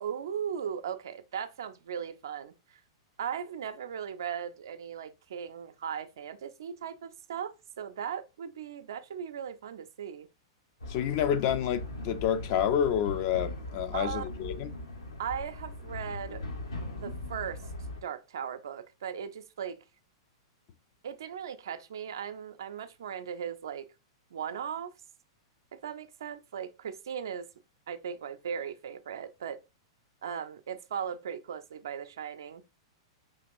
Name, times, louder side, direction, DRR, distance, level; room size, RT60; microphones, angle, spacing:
voice 1, 0.0-2.8 3.2-10.3 13.9-14.5 15.2-16.4 17.0-17.6 18.0-19.8 21.0-23.9 24.3-24.9 25.7-27.5 27.9-29.6 30.2-32.6, right 8 dB, 60° right, 0.4 m, -38 dB
sound 1, 10.8-18.0, left 2 dB, 75° left, 1.0 m, -39 dB
voice 2, 10.9-14.7, left 9 dB, 45° left, 0.4 m, -29 dB
5.0 x 2.9 x 2.5 m
figure-of-eight pair, 100°, 2 cm